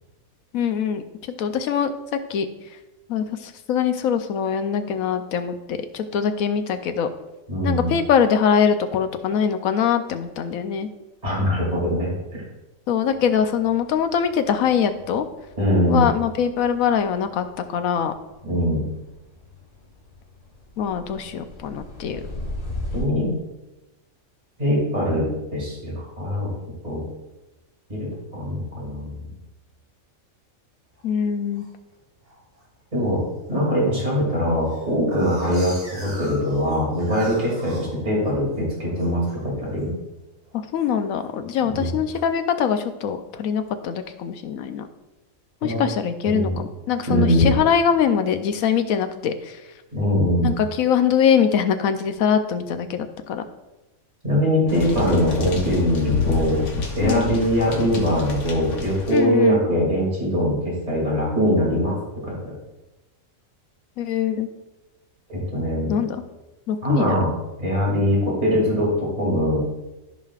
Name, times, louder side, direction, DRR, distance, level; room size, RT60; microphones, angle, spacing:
voice 1, 0.5-1.0 1.4-2.5 3.1-7.1 7.6-10.9 12.9-15.2 15.9-18.1 20.8-22.2 31.0-31.6 40.5-44.9 45.6-49.6 50.4-53.4 57.0-57.2 59.1-59.6 64.0-64.5 65.9-66.2 66.7-67.2, left 7 dB, 85° left, 9 dB, 1.1 m, -23 dB
voice 2, 7.5-7.9 11.2-12.4 15.6-16.1 18.4-18.8 22.9-23.4 24.6-26.5 26.8-27.0 27.9-29.3 32.9-33.2 33.5-39.9 41.7-42.0 45.6-45.8 46.3-46.6 47.1-47.5 49.9-50.5 54.2-56.6 56.9-62.0 62.2-62.5 65.3-65.9 66.8-67.3 67.6-69.7, equal, 30° right, -5 dB, 2.7 m, -22 dB
sound 1, 13.0-23.0, left 1 dB, 40° left, 1.6 m, -39 dB
sound 2, 31.0-31.7 32.2-32.6 33.0-33.1 33.4-33.5 33.8-38.6 38.9-39.4 39.7-40.0 40.3-41.3 41.8-42.2, right 1 dB, 60° right, 3.2 m, -41 dB
sound 3, 54.7-59.2, left 5 dB, 65° left, 1.3 m, -28 dB
13.5 x 5.2 x 2.4 m, 1.0 s
omnidirectional pair, 1.4 m